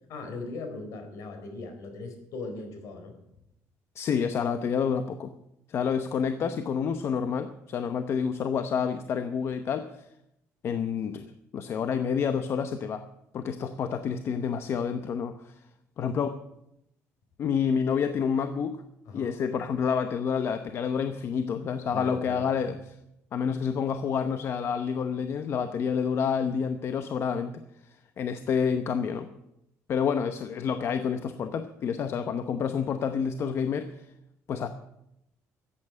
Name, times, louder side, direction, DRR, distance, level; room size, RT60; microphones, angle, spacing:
voice 1, 0.1-3.1 19.1-19.3 21.9-22.5, left 3 dB, 65° left, 6 dB, 4.1 m, -39 dB
voice 2, 4.0-5.3 5.7-9.9 10.6-13.0 13.3-15.5 16.0-16.4 17.4-18.8 19.1-22.8 23.3-27.6 28.2-29.3 29.9-34.0 34.5-34.7, left 6 dB, 45° left, 9 dB, 0.8 m, -28 dB
14.0 x 8.8 x 8.4 m, 0.82 s
cardioid pair, 140°, 6 cm